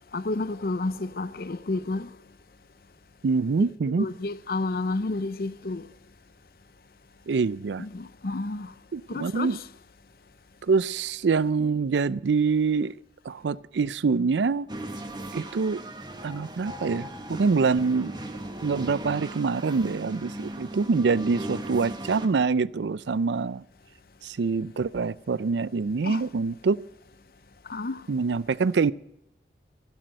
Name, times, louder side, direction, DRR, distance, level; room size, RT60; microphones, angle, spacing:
voice 1, 0.1-2.1 4.0-5.8 7.8-8.7 9.1-9.6 26.0-26.2 27.7-28.0, left 2 dB, 55° left, 0.6 m, -30 dB
voice 2, 3.2-4.1 7.3-7.8 8.9-9.6 10.7-13.0 13.3-14.7 15.3-15.8 16.2-18.1 18.6-23.6 24.2-26.8 28.1-28.9, right 4 dB, 85° right, 0.4 m, -25 dB
sound 1, 14.7-22.3, right 1 dB, 25° right, 1.1 m, -38 dB
15.5 x 12.0 x 6.4 m
head